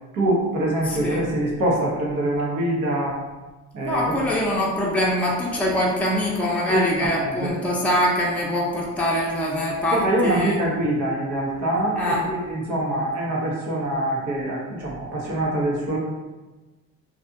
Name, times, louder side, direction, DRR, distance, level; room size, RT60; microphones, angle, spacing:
voice 1, 0.1-3.2 3.7-4.2 6.7-7.6 9.9-16.0, right 1 dB, 80° right, -4 dB, 0.9 m, -24 dB
voice 2, 0.9-1.2 3.8-10.6 12.0-12.2, equal, 5° left, -4 dB, 0.5 m, -23 dB
2.6 x 2.4 x 2.6 m, 1.2 s
cardioid pair, 90°, 30 cm